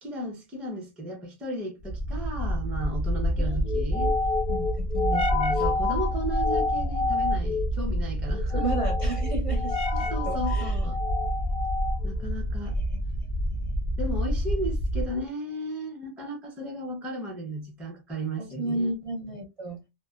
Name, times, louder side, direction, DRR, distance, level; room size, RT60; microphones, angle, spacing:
voice 1, 0.0-4.1 5.1-8.6 9.9-11.0 12.0-12.8 14.0-18.9, right 1 dB, ahead, 0.5 m, -35 dB
sound 1, 1.9-15.2, left 1 dB, 85° left, 0.9 m, -27 dB
voice 2, 3.4-4.1 4.5-5.2 5.5-5.7 8.5-10.9 12.6-13.0 13.5-13.7 18.4-19.8, right 2 dB, 40° right, 0.7 m, -34 dB
2.7 x 2.1 x 2.2 m
omnidirectional pair, 1.0 m